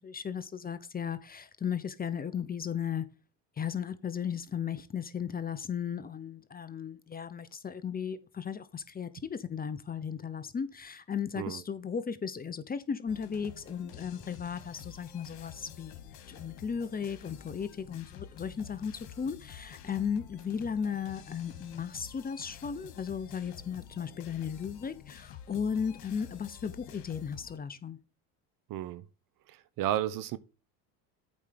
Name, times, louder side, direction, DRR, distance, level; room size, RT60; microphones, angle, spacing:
voice 1, 0.0-3.1 3.6-28.0, left 7 dB, 20° left, 0.8 m, -36 dB
sound 1, 13.1-27.6, left 9 dB, 60° left, 2.0 m, -49 dB
voice 2, 28.7-29.0 29.8-30.4, right 12 dB, 50° right, 0.9 m, -31 dB
8.6 x 5.0 x 5.8 m
supercardioid pair, 95°, 42 cm